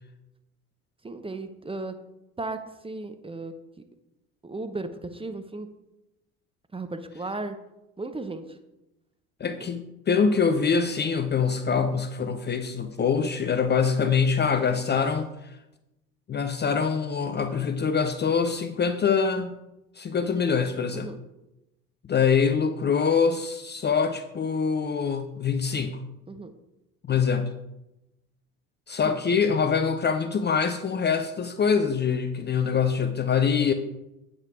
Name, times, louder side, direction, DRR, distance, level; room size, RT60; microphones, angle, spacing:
voice 1, 1.0-1.9 2.4-3.8 4.4-5.7 6.7-7.6 8.0-8.4 9.6-9.7 19.4-19.5 20.9-21.2 26.3-26.5 29.0-29.1, right 2 dB, 15° right, 8 dB, 0.8 m, -35 dB
voice 2, 9.4-15.6 16.3-19.5 20.0-21.1 22.0-26.0 27.0-27.5 28.9-33.7, left 6 dB, 25° left, 8 dB, 0.6 m, -24 dB
8.8 x 6.1 x 4.7 m, 0.93 s
figure-of-eight pair, 60°, 43 cm